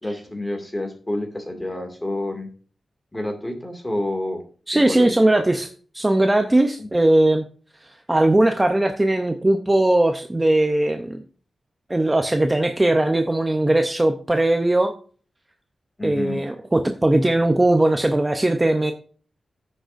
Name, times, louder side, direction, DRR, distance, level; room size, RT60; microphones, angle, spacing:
voice 1, 0.0-2.5 3.1-4.4 4.7-5.6 6.8-6.9 16.0-16.4, left 1 dB, 15° left, 4 dB, 2.2 m, -29 dB
voice 2, 4.7-5.7 5.9-7.4 7.8-11.2 11.9-14.9 16.0-18.9, right 1 dB, 15° right, 6 dB, 0.6 m, -19 dB
15.0 x 6.4 x 2.6 m, 0.42 s
wide cardioid pair, 130°, 0 cm